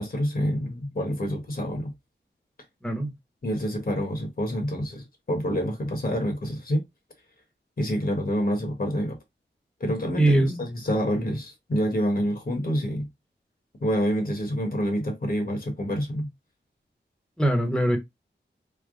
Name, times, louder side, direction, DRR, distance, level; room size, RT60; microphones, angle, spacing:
voice 1, 0.0-1.9 3.4-6.8 7.8-9.2 9.8-13.1 13.8-16.3, equal, 50° left, 1.3 m, -27 dB
voice 2, 10.2-10.6 17.4-18.0, right 1 dB, 5° left, 1.0 m, -22 dB
3.4 x 2.1 x 3.7 m
wide cardioid pair, 70°, 19 cm